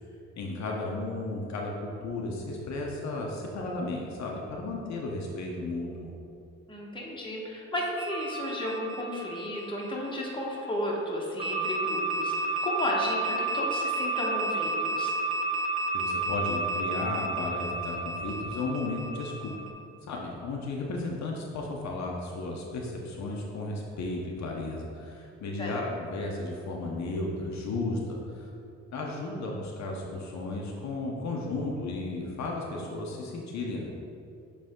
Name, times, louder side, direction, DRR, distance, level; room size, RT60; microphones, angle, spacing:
voice 1, 0.4-6.1 15.9-19.5 20.1-28.5 28.9-33.9, left 2 dB, 65° left, -1 dB, 0.8 m, -34 dB
voice 2, 6.7-15.1 25.6-25.8, equal, 15° left, -3 dB, 1.3 m, -33 dB
sound 1, 8.0-10.5 11.4-19.7, right 2 dB, 20° right, 0.9 m, -31 dB
7.7 x 3.4 x 3.7 m, 2.5 s
cardioid pair, 90°, 30 cm